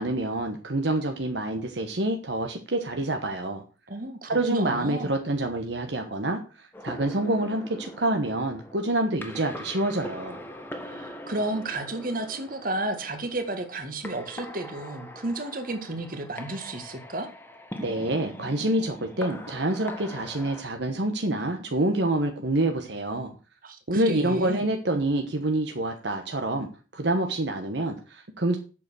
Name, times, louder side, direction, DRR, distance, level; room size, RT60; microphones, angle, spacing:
voice 1, 0.0-3.6 4.3-10.4 17.8-23.3 23.9-28.6, right 1 dB, 70° right, 4 dB, 1.2 m, -27 dB
voice 2, 3.9-5.1 10.8-17.3 23.6-24.7, right 2 dB, 50° right, 6 dB, 1.8 m, -32 dB
sound 1, 6.7-20.6, left 1 dB, 10° left, 1.4 m, -42 dB
8.3 x 6.7 x 6.2 m, 0.35 s
head